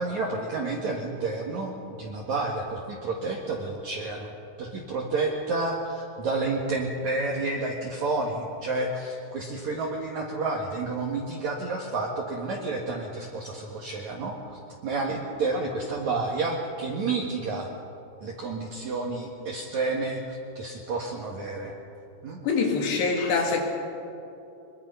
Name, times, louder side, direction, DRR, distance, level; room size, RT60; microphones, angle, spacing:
voice 1, 0.0-4.3 4.6-17.7 18.2-21.7 22.2-22.4, right 3 dB, 55° right, -1 dB, 2.6 m, -30 dB
voice 2, 22.4-23.6, left 4 dB, 85° left, 1 dB, 4.8 m, -24 dB
24.0 x 23.0 x 5.6 m, 2.8 s
omnidirectional pair, 4.7 m